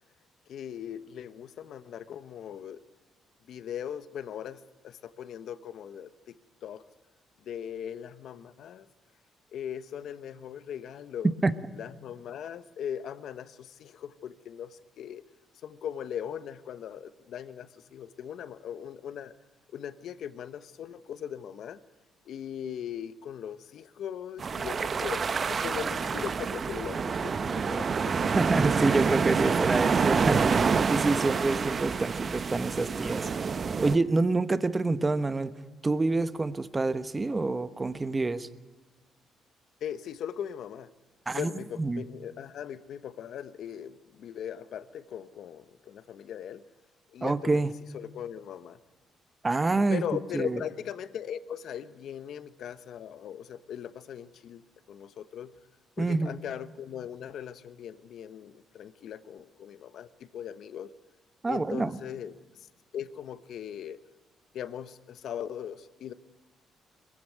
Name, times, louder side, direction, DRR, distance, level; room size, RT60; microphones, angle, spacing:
voice 1, 0.5-2.8 3.5-6.4 6.6-6.8 7.4-8.9 9.5-11.3 11.7-15.2 15.6-19.3 19.7-21.8 22.3-28.3 39.8-40.9 41.3-46.6 47.1-47.6 47.9-48.8 49.9-55.5 56.0-60.9 61.5-62.3 62.6-62.7 62.9-64.0 64.5-66.1, left 9 dB, 70° left, 13 dB, 1.1 m, -39 dB
sound 1, 24.4-34.0, right 5 dB, 45° right, 0.8 m, -27 dB
voice 2, 28.3-33.3 33.8-35.5 35.8-38.5 41.3-41.5 41.8-42.0 47.2-47.7 49.4-50.0 50.3-50.6 56.0-56.4 61.4-62.0, right 3 dB, 25° right, 13 dB, 1.1 m, -27 dB
22.0 x 15.5 x 9.2 m, 1.2 s
cardioid pair, 90°, 0 cm